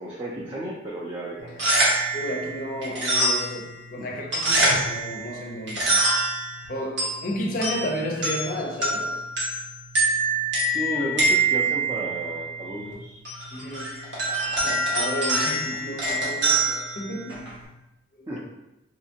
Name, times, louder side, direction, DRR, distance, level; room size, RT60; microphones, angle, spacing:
voice 1, 0.0-1.6 4.0-4.1 10.7-13.2 18.3-18.4, right 1 dB, 25° right, 0.4 m, -33 dB
sound 1, 1.4-17.6, right 2 dB, 70° right, 1.1 m, -26 dB
voice 2, 2.1-5.9 6.7-9.2 13.5-14.1 14.6-17.5 18.2-18.4, equal, 45° left, 0.5 m, -32 dB
3.3 x 2.9 x 2.7 m
head